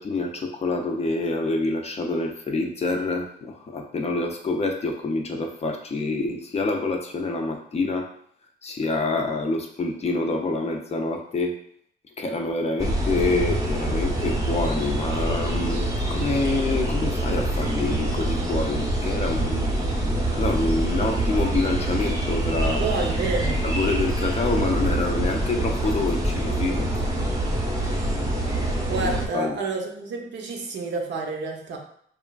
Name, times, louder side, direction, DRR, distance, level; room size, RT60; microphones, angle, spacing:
voice 1, 0.0-8.1 8.6-11.6 12.2-19.7 20.3-22.8 23.6-26.9 29.0-29.6, left 3 dB, 30° left, 3 dB, 0.4 m, -27 dB
sound 1, 12.8-29.3, right 1 dB, 15° right, 0.6 m, -25 dB
voice 2, 22.7-23.6 28.5-31.8, right 3 dB, 65° right, 2 dB, 0.6 m, -29 dB
3.0 x 2.4 x 2.3 m, 0.65 s
cardioid pair, 90°, 20 cm